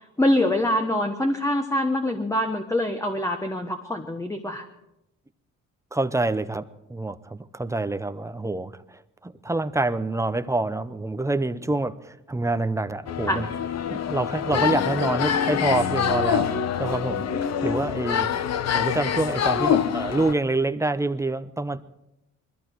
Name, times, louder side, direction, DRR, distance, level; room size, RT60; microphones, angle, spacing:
voice 1, 0.0-4.7 13.3-13.4, left 1 dB, 10° left, 5 dB, 1.2 m, -24 dB
voice 2, 5.9-6.6 6.9-13.4 13.9-16.5 16.8-17.3 17.6-18.3 18.7-21.8, right 2 dB, 10° right, 11 dB, 0.7 m, -26 dB
sound 1, 13.1-20.3, left 8 dB, 60° left, 0.9 m, -25 dB
21.0 x 14.0 x 4.6 m, 0.89 s
cardioid pair, 90°, 30 cm